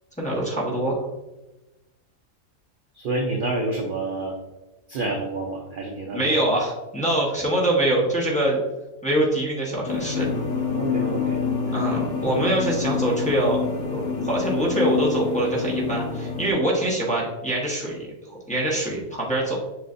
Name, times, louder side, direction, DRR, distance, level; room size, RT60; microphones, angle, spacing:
voice 1, 0.2-1.0 6.1-8.6 9.0-10.3 11.7-13.6 13.9-19.6, right 1 dB, 5° left, -6 dB, 0.9 m, -24 dB
voice 2, 3.0-4.3 4.9-6.3 10.7-11.4, right 2 dB, 65° right, 0 dB, 0.5 m, -28 dB
sound 1, 9.9-16.5, left 5 dB, 70° left, 0.4 m, -27 dB
7.1 x 2.4 x 2.5 m, 1.0 s
omnidirectional pair, 1.5 m